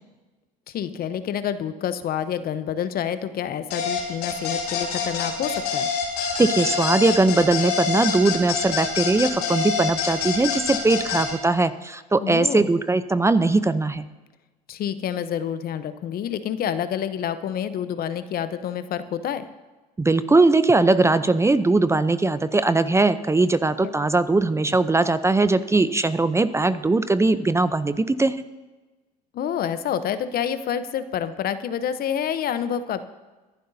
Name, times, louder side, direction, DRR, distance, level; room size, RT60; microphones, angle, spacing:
voice 1, 0.7-5.9 12.2-12.7 14.7-19.4 29.3-33.0, left 9 dB, 50° left, 12 dB, 0.9 m, -28 dB
sound 1, 3.7-11.3, left 6 dB, 85° left, 2.9 m, -26 dB
voice 2, 6.4-14.0 20.0-28.4, right 3 dB, 15° right, 13 dB, 0.6 m, -20 dB
23.5 x 11.5 x 2.8 m, 1.2 s
hypercardioid pair, 70°, 20 cm